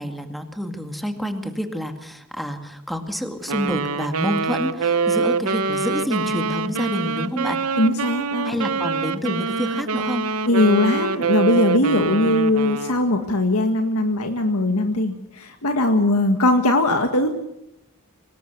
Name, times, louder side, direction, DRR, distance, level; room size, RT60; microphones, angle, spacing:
voice 1, 0.0-7.6 8.4-10.3, equal, ahead, 6 dB, 2.1 m, -28 dB
Wind instrument woodwind instrument, 3.5-13.1, right 4 dB, 75° right, 1.0 m, -25 dB
voice 2, 7.8-8.6 10.5-17.3, left 1 dB, 75° left, 5 dB, 1.8 m, -20 dB
24.5 x 20.5 x 6.8 m, 0.84 s
head